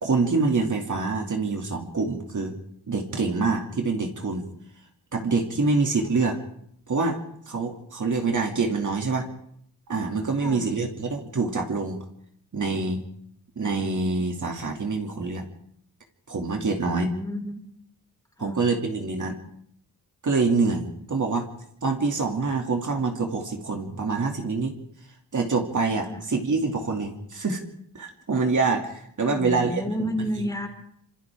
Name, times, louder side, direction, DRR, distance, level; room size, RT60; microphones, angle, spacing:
voice 1, 0.0-2.6 2.9-4.4 5.1-6.4 6.9-7.2 7.5-9.3 9.9-12.0 12.5-13.0 13.6-15.5 16.3-17.1 18.4-19.4 20.2-21.5 21.8-24.7 25.3-27.6 27.9-29.7 30.0-30.1, right 4 dB, 50° right, 2 dB, 2.6 m, -25 dB
voice 2, 10.4-10.7 16.8-17.5 18.4-18.7 26.0-26.2 29.2-30.7, equal, 10° left, 2 dB, 4.6 m, -31 dB
28.5 x 26.0 x 3.7 m, 0.71 s
wide cardioid pair, 120°, 40 cm